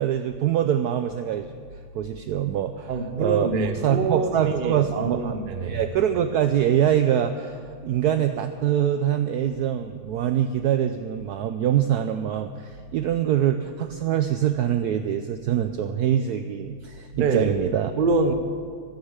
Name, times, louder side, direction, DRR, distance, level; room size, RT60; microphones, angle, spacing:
voice 1, 0.0-1.5 1.9-2.9 3.2-3.5 3.8-5.4 5.7-17.9, right 10 dB, 75° right, 0.9 m, -24 dB
voice 2, 2.9-5.9 17.1-17.5 18.0-18.3, right 3 dB, 45° right, 0.7 m, -25 dB
13.0 x 8.8 x 8.1 m
omnidirectional pair, 2.1 m